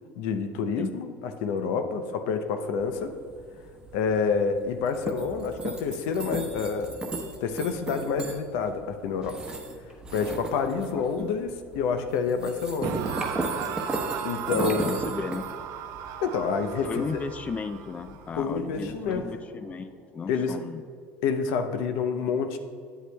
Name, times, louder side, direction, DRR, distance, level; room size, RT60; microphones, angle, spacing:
voice 1, 0.2-3.1 3.9-7.0 7.4-9.4 10.1-13.1 14.2-14.9 16.2-17.2 18.4-19.2 20.3-20.6 21.2-22.6, left 5 dB, 75° left, 7 dB, 0.6 m, -28 dB
sound 1, 2.8-19.2, right 2 dB, 15° right, 1.0 m, -37 dB
voice 2, 10.9-11.4 14.8-15.5 16.8-20.8, left 5 dB, 25° left, 10 dB, 0.3 m, -35 dB
sound 2, 12.8-19.9, right 9 dB, 65° right, 0.5 m, -37 dB
9.8 x 7.9 x 2.2 m, 2.2 s
supercardioid pair, 100°, 6 cm